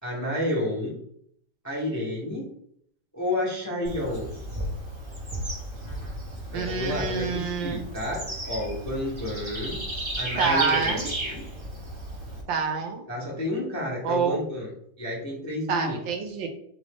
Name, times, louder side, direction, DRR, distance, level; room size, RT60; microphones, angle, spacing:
voice 1, 0.0-0.9 1.6-2.5 3.1-4.3 6.5-9.8 10.2-11.5 13.1-14.7 15.0-16.0, left 1 dB, 15° left, -3 dB, 0.6 m, -30 dB
Bird / Insect, 3.8-12.4, right 1 dB, 25° right, 0.6 m, -34 dB
voice 2, 6.5-7.9 10.4-11.1 12.5-13.0 14.0-14.4 15.7-16.5, right 5 dB, 80° right, 4 dB, 1.5 m, -27 dB
3.7 x 3.6 x 3.6 m, 0.66 s
omnidirectional pair, 2.1 m